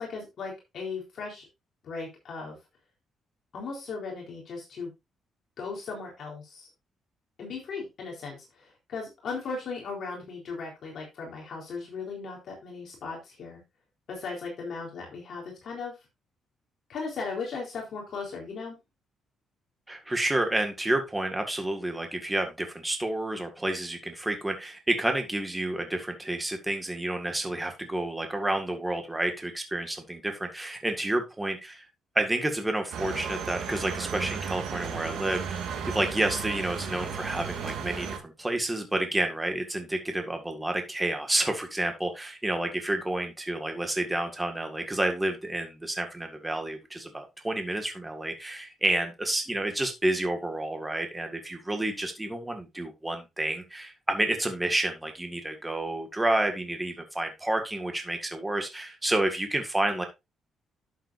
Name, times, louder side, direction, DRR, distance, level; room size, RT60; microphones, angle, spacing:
voice 1, 0.0-1.5 1.8-2.6 3.5-4.9 5.6-6.7 7.4-13.6 14.1-16.0 16.9-18.8, left 4 dB, 55° left, -1 dB, 3.8 m, -37 dB
voice 2, 19.9-31.8 32.1-60.0, right 1 dB, 10° right, 5 dB, 1.8 m, -30 dB
sound 1, 32.9-38.2, right 6 dB, 75° right, 2.5 m, -34 dB
11.5 x 7.6 x 2.6 m, 0.23 s
cardioid pair, 140°, 0 cm